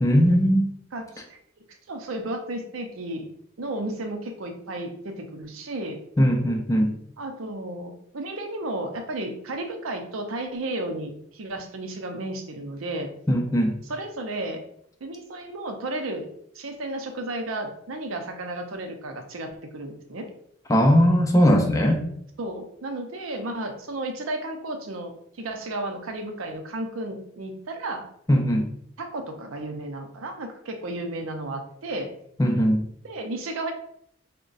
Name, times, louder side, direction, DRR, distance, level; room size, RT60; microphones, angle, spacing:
voice 1, 0.0-0.7 6.2-7.0 13.3-13.8 20.7-22.0 28.3-28.7 32.4-32.9, equal, 15° left, 3 dB, 0.4 m, -19 dB
voice 2, 0.9-1.4 1.9-3.3 3.6-6.0 7.2-13.1 13.9-14.6 15.0-16.3 16.5-20.3 22.4-25.1 25.4-28.0 29.0-32.1 33.0-33.7, right 1 dB, 85° right, 5 dB, 0.6 m, -33 dB
3.6 x 2.1 x 3.9 m, 0.70 s
head